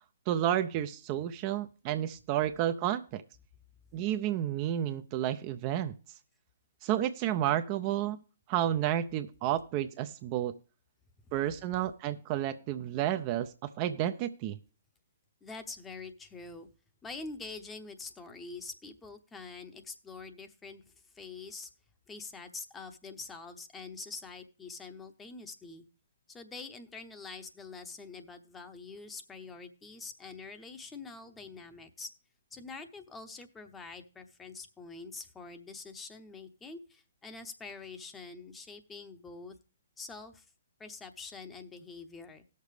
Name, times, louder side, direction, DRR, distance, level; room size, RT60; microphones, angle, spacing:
voice 1, 0.3-3.2 3.9-6.0 6.8-8.2 8.5-10.5 11.3-14.6, right 11 dB, 35° right, 10 dB, 0.5 m, -31 dB
voice 2, 15.4-16.7 17.0-21.7 22.1-25.9 26.3-32.1 32.5-39.6 40.0-40.5 40.8-42.4, left 4 dB, 10° left, 8 dB, 0.8 m, -45 dB
17.0 x 6.7 x 3.3 m, 0.35 s
figure-of-eight pair, 130°, 0 cm